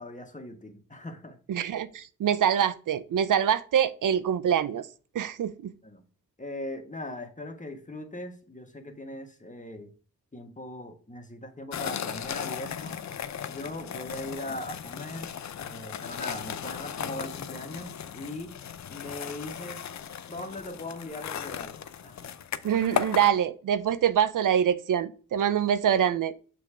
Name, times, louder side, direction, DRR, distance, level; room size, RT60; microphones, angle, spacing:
voice 1, 0.0-1.4 5.8-6.0 6.4-9.9 10.3-13.0 13.5-15.3 15.6-18.5 18.9-19.9 20.3-21.8 22.0-22.3, left 1 dB, 25° left, 1.3 m, -40 dB
voice 2, 1.5-4.8 5.1-5.7 22.6-26.3, right 9 dB, 70° right, 0.5 m, -25 dB
sound 1, 11.7-23.3, left 8 dB, 55° left, 0.5 m, -36 dB
6.8 x 3.3 x 4.8 m
cardioid pair, 55°, 33 cm